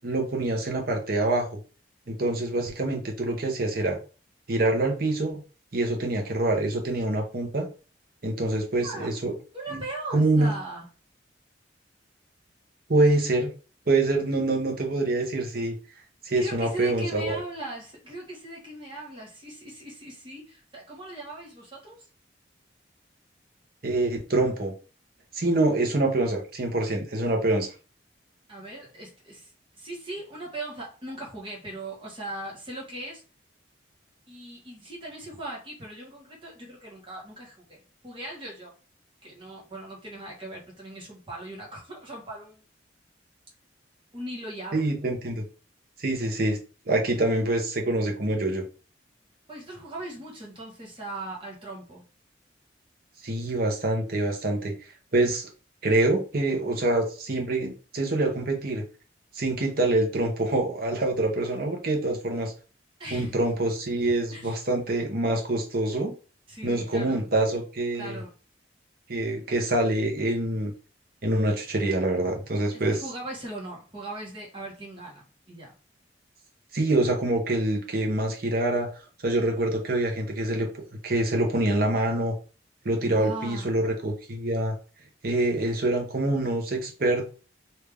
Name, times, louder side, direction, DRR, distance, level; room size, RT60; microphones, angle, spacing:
voice 1, 0.0-1.5 2.1-4.0 4.5-5.4 5.7-7.7 8.2-9.3 9.7-9.8 10.1-10.5 12.9-13.5 13.9-15.7 16.2-17.4 23.8-24.7 25.3-27.7 44.7-45.4 46.0-46.6 46.9-48.6 53.2-54.7 55.1-55.5 55.8-58.8 59.3-62.5 63.1-66.1 66.6-68.2 69.1-70.7 71.2-73.0 76.7-78.9 79.2-80.7 81.0-82.3 82.8-84.7 85.2-87.3, right 2 dB, 50° right, 2 dB, 0.9 m, -25 dB
voice 2, 8.8-9.1 9.5-10.9 16.4-22.1 28.5-33.2 34.3-38.7 39.2-42.6 44.1-44.8 49.5-52.0 63.0-63.4 64.3-64.6 66.5-67.3 67.9-68.3 72.7-75.7 83.0-83.7, right 1 dB, 25° right, -3 dB, 1.3 m, -39 dB
3.4 x 2.7 x 3.4 m, 0.35 s
head